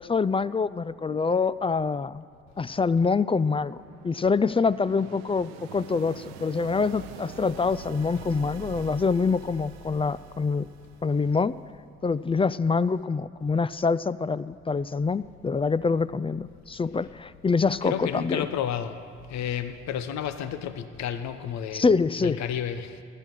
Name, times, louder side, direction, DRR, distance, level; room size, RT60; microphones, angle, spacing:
voice 1, 0.0-2.2 2.6-3.8 4.0-10.7 11.0-11.6 12.0-18.5 21.7-22.4, left 4 dB, 20° left, 17 dB, 0.4 m, -25 dB
sound 1, 3.2-11.7, right 7 dB, 85° right, 0.7 m, -45 dB
voice 2, 17.8-19.0 19.3-21.8 22.2-23.0, left 9 dB, 65° left, 10 dB, 0.8 m, -31 dB
14.5 x 10.5 x 6.6 m, 2.2 s
hypercardioid pair, 45°, 30 cm